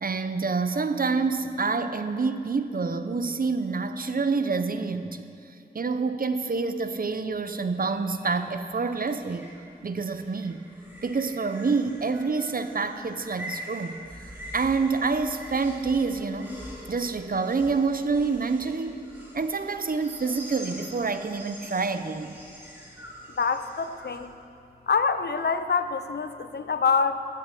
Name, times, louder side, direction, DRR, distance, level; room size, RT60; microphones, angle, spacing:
voice 1, 0.0-5.3 5.7-9.5 9.8-10.6 11.0-14.0 14.5-16.5 16.9-19.0 19.3-22.4, right 4 dB, 60° right, 10 dB, 0.7 m, -27 dB
sound 1, 7.3-24.3, equal, 10° right, 2.8 m, -45 dB
voice 2, 23.3-24.3 24.9-27.3, left 5 dB, 75° left, 10 dB, 0.6 m, -26 dB
13.5 x 8.5 x 6.9 m, 2.5 s
wide cardioid pair, 85°, 17 cm